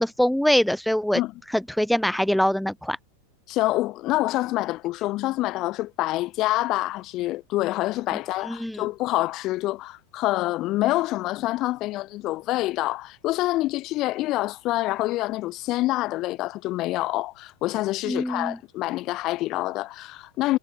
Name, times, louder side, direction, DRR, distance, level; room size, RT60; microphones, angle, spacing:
voice 1, 0.0-1.2 1.7-3.0 8.5-8.8 18.1-18.6, equal, ahead, 0.3 m, -23 dB
voice 2, 3.5-20.6, left 17 dB, 35° left, 1.0 m, -26 dB
figure-of-eight pair, 90°, 0 cm